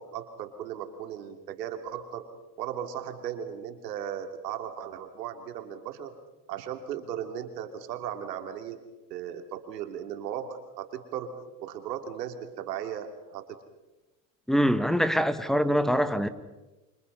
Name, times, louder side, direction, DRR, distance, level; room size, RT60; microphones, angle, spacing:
voice 1, 0.0-2.3 2.6-6.1 6.5-8.8 9.1-13.6, right 9 dB, 85° right, 3.2 m, -37 dB
voice 2, 14.5-16.3, equal, ahead, 1.6 m, -24 dB
29.0 x 25.5 x 5.6 m
supercardioid pair, 105°, 48 cm